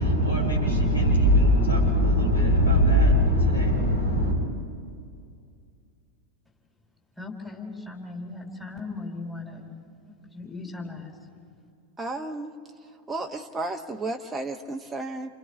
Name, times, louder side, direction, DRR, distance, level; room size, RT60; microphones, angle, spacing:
voice 1, 0.0-4.4, equal, 80° left, -3 dB, 7.9 m, -20 dB
voice 2, 7.2-9.7 10.0-11.1, left 3 dB, 10° left, -2 dB, 4.8 m, -38 dB
voice 3, 12.0-12.5 13.1-15.3, right 2 dB, 10° right, 2 dB, 1.2 m, -33 dB
30.0 x 29.0 x 3.6 m, 2.3 s
figure-of-eight pair, 90°, 0 cm